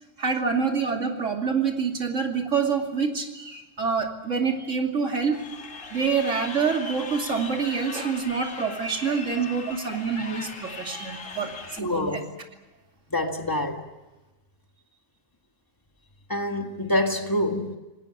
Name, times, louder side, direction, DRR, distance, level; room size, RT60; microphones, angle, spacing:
voice 1, 0.2-5.4 5.9-12.3, right 5 dB, 85° right, 3.0 m, -26 dB
Crowd, 5.3-11.8, left 4 dB, 90° left, 2.3 m, -39 dB
voice 2, 11.8-12.2 13.1-13.8 16.3-17.8, left 1 dB, 15° left, 1.9 m, -26 dB
27.5 x 18.5 x 8.8 m
omnidirectional pair, 1.3 m